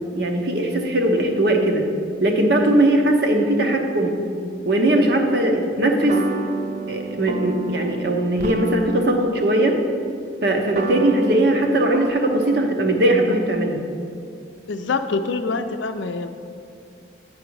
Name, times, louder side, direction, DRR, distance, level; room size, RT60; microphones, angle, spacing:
voice 1, 0.1-1.9 2.2-4.2 4.6-6.2 6.9-9.8 10.4-13.9, right 1 dB, 55° right, 3 dB, 0.9 m, -19 dB
sound 1, 6.1-12.1, right 3 dB, 40° right, 0.3 m, -31 dB
voice 2, 14.7-16.3, left 4 dB, 75° left, 9 dB, 0.5 m, -25 dB
8.6 x 6.1 x 4.7 m, 2.4 s
head